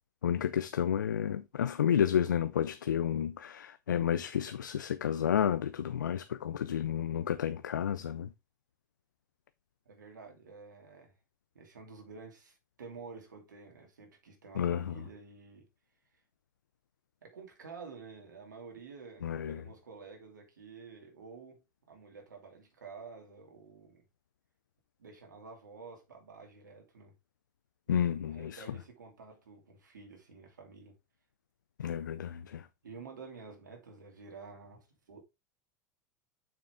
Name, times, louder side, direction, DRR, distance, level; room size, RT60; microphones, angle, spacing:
voice 1, 0.2-8.3 14.6-15.0 19.2-19.6 27.9-28.6 31.8-32.7, left 9 dB, 85° left, 0.5 m, -31 dB
voice 2, 9.9-11.1 11.5-15.7 17.2-24.0 25.0-27.1 28.2-30.9 32.8-35.2, right 4 dB, 85° right, 2.7 m, -50 dB
7.2 x 6.0 x 3.7 m
hypercardioid pair, 90°, 10 cm